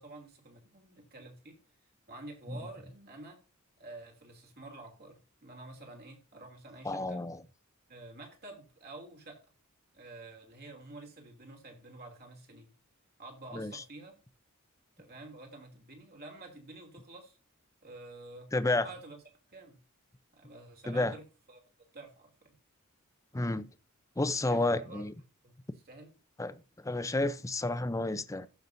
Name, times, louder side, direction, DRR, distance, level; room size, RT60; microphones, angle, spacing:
voice 1, 0.0-1.6 2.1-3.4 3.8-7.2 7.9-9.4 9.9-12.7 13.2-14.2 15.0-17.4 17.8-19.2 19.5-19.8 20.3-21.6 21.9-22.6 24.4-25.1 25.4-25.6 25.8-26.1, right 2 dB, 50° right, 2.9 m, -49 dB
voice 2, 6.8-7.4 13.5-13.7 18.5-18.9 20.9-21.1 23.3-23.7 24.2-25.1 26.4-26.6 26.8-28.5, left 2 dB, 15° left, 0.6 m, -30 dB
15.0 x 6.0 x 2.6 m
head